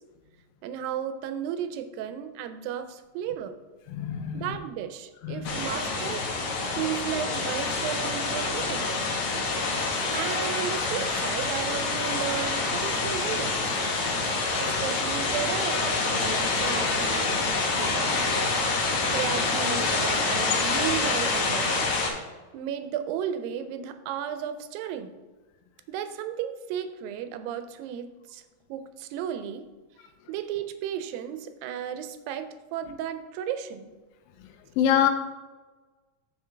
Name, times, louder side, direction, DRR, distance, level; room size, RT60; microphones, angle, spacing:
voice 1, 0.6-3.6 4.3-6.3 6.8-9.0 10.1-13.8 14.6-18.4 19.1-21.9 22.3-25.1 25.9-28.4 28.7-29.7 30.3-33.9, right 9 dB, 85° right, 10 dB, 2.3 m, -34 dB
voice 2, 3.9-4.5 5.2-5.5 34.8-35.1, left 10 dB, 85° left, 7 dB, 2.4 m, -24 dB
sound 1, 5.4-22.1, left 3 dB, 65° left, 1.9 m, -27 dB
7.1 x 6.9 x 3.3 m, 1.2 s
omnidirectional pair, 4.0 m